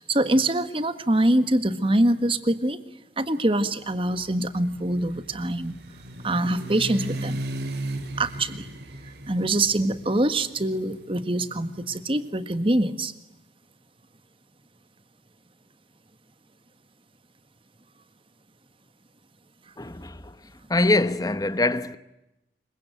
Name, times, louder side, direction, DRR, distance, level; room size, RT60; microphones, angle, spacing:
voice 1, 0.1-2.8 3.2-5.8 6.2-7.4 8.2-8.7 9.3-13.1, right 1 dB, 30° right, 1.6 m, -24 dB
sound 1, 4.1-12.1, right 1 dB, 65° right, 2.6 m, -36 dB
voice 2, 19.8-20.4 20.7-22.0, left 2 dB, 20° left, 0.9 m, -23 dB
27.5 x 23.5 x 9.1 m
head